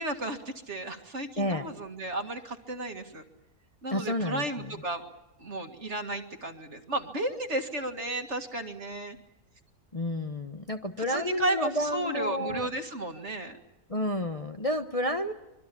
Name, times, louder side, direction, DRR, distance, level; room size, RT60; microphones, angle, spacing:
voice 1, 0.0-3.2 3.8-5.0 5.4-9.2 11.1-13.6, right 1 dB, 50° right, 6 dB, 2.3 m, -33 dB
voice 2, 1.4-1.7 3.9-4.7 9.9-12.7 13.9-15.3, left 1 dB, 25° left, 6 dB, 1.0 m, -30 dB
25.5 x 23.0 x 8.5 m, 0.97 s
omnidirectional pair, 1.6 m